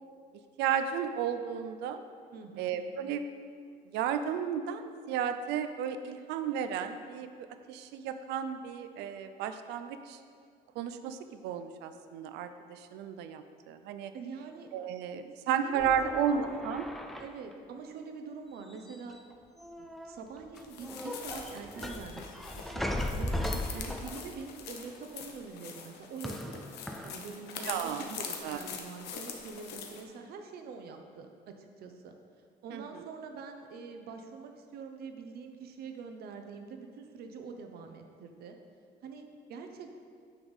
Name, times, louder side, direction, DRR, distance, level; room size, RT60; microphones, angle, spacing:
voice 1, 0.6-2.0 2.6-3.2 3.9-10.2 10.8-14.1 14.7-16.9 27.7-28.0 28.4-28.6 32.7-32.8, right 8 dB, 85° right, 9 dB, 0.5 m, -33 dB
voice 2, 2.3-2.8 14.1-14.7 15.4-16.6 17.2-19.2 19.8-23.4 23.7-32.2 32.6-38.6 39.0-40.0, right 5 dB, 65° right, 5 dB, 0.8 m, -45 dB
sound 1, 15.8-17.5 18.7-19.3 19.6-20.2 20.6-24.5 26.2-27.2, left 1 dB, ahead, 0.4 m, -37 dB
sound 2, 20.6-30.0, left 6 dB, 85° left, 0.9 m, -44 dB
8.9 x 3.5 x 6.2 m, 2.2 s
cardioid pair, 110°, 17 cm